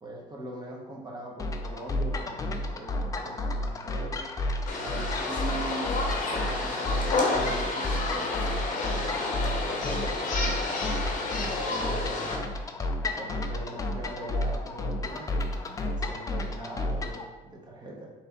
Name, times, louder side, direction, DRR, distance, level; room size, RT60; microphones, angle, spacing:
voice 1, 0.0-4.3 4.8-6.0 6.3-8.7 9.1-10.7 11.3-12.5 13.2-18.1, right 2 dB, 25° right, -1 dB, 0.9 m, -42 dB
sound 1, 1.4-17.2, left 1 dB, 20° left, 0.3 m, -32 dB
sound 2, 4.7-12.4, left 3 dB, 50° left, 0.7 m, -30 dB
3.3 x 2.8 x 3.5 m, 1.2 s
cardioid pair, 110°, 17 cm